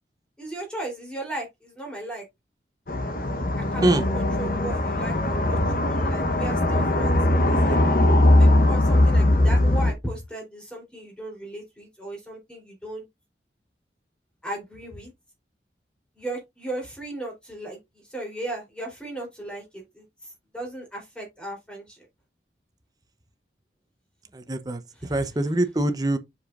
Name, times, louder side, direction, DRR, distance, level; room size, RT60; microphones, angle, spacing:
voice 1, 0.4-2.2 3.5-7.8 8.3-13.1 14.4-15.1 16.2-22.1 24.9-25.2, right 1 dB, 5° left, 3.5 m, -36 dB
sound 1, 2.9-9.9, left 1 dB, 50° left, 1.0 m, -20 dB
voice 2, 24.3-26.2, right 1 dB, 20° right, 0.8 m, -24 dB
7.5 x 7.1 x 2.5 m
head